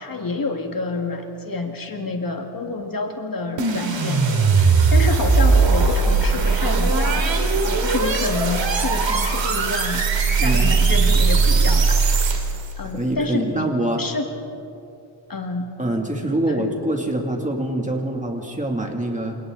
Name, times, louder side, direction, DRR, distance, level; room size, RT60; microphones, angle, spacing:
voice 1, 0.0-4.2 4.9-12.2 12.8-13.7 14.0-14.3 15.3-15.7 16.5-16.7, left 3 dB, 45° left, 3 dB, 2.1 m, -28 dB
sound 1, 3.6-12.7, right 4 dB, 65° right, 3.0 m, -18 dB
voice 2, 10.4-10.7 12.9-14.0 15.8-19.4, right 1 dB, 15° right, 1 dB, 2.7 m, -24 dB
29.0 x 28.5 x 4.0 m, 2.6 s
wide cardioid pair, 135°, 49 cm